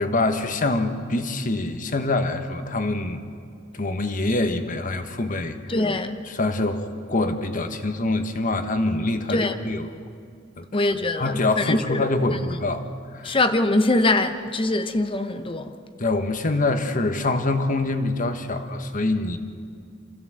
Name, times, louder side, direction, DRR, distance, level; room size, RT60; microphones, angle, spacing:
voice 1, 0.0-3.3 3.7-5.8 6.2-9.9 10.6-10.9 11.1-12.8 13.1-13.4 16.0-19.4, left 2 dB, 45° left, 1.3 m, -25 dB
voice 2, 5.7-6.2 9.3-9.6 10.7-12.0 13.2-15.7, left 2 dB, 25° left, 0.8 m, -23 dB
26.0 x 15.5 x 7.7 m
head